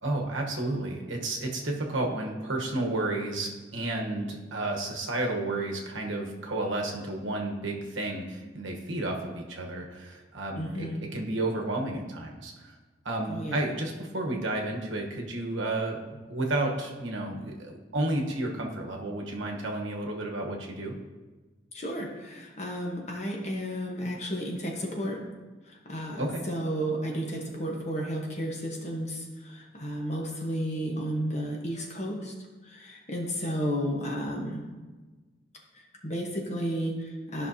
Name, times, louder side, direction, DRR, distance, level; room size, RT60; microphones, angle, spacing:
voice 1, 0.0-10.9 11.1-12.7 13.0-16.0 16.3-20.9 26.2-26.5, right 2 dB, 75° right, 1 dB, 1.1 m, -31 dB
voice 2, 10.5-11.1 13.2-13.6 21.7-25.2 25.8-32.3 32.7-34.6 36.0-37.5, equal, 35° left, 0 dB, 1.1 m, -32 dB
12.5 x 5.6 x 2.8 m, 1.3 s
head